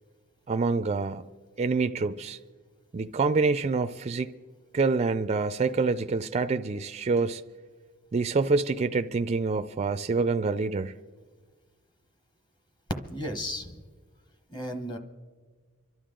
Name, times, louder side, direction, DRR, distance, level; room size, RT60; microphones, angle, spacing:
voice 1, 0.5-1.2 1.6-2.4 2.9-4.3 4.7-7.4 8.1-10.9, right 4 dB, 30° right, 0.4 m, -26 dB
voice 2, 13.1-13.8 14.5-15.0, equal, 20° left, 1.0 m, -34 dB
25.5 x 12.0 x 3.8 m
head